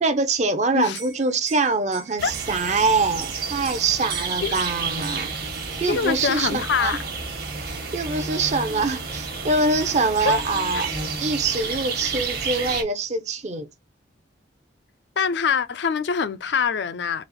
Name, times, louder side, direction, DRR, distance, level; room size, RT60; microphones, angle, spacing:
voice 1, 0.0-7.0 7.6-7.7 7.9-10.9 11.2-13.7, right 3 dB, 40° right, 0.6 m, -24 dB
Liquid, 0.8-6.1 6.6-7.1 7.4-8.0 9.2-9.3 9.5-10.1, right 8 dB, 90° right, 1.0 m, -42 dB
sound 1, 2.2-12.8, right 4 dB, 55° right, 1.2 m, -31 dB
voice 2, 4.2-4.6 5.9-7.0 10.2-10.4 10.7-10.8 15.2-17.2, left 6 dB, 65° left, 0.4 m, -24 dB
4.0 x 2.4 x 4.0 m
head